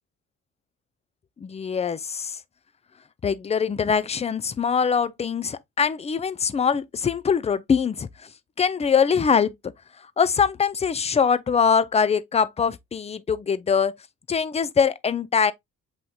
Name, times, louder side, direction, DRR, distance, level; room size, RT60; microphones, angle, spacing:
voice 1, 1.4-2.4 3.2-8.1 8.6-9.5 10.2-13.9 14.3-15.5, left 6 dB, 20° left, 0.4 m, -23 dB
7.7 x 2.8 x 2.2 m
cardioid pair, 90°, 30 cm